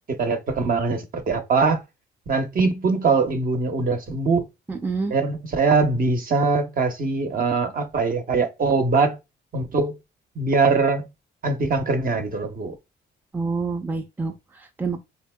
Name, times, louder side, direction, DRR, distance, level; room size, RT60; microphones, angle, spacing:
voice 1, 0.1-1.8 2.3-4.4 5.1-9.2 9.5-10.0 10.4-11.1 11.4-12.7, right 4 dB, 45° right, 0.8 m, -22 dB
voice 2, 4.7-5.1 13.3-15.0, right 4 dB, 10° right, 0.5 m, -28 dB
4.3 x 2.7 x 2.2 m
cardioid pair, 90°, 20 cm